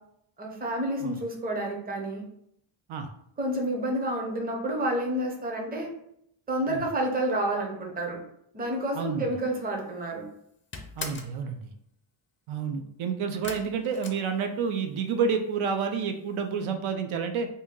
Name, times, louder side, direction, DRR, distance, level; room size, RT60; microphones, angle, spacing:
voice 1, 0.4-2.2 3.4-5.9 6.5-8.2 8.5-10.2, right 1 dB, 20° right, 1 dB, 0.6 m, -29 dB
voice 2, 8.9-9.2 11.0-11.7 12.5-17.5, right 6 dB, 80° right, 6 dB, 0.6 m, -29 dB
sound 1, 9.7-10.1 10.4-11.4 13.4-14.9 15.2-15.8 16.1-16.2 16.6-16.7, left 4 dB, 25° left, 0.4 m, -40 dB
2.8 x 2.7 x 3.6 m, 0.72 s
wide cardioid pair, 150°, 48 cm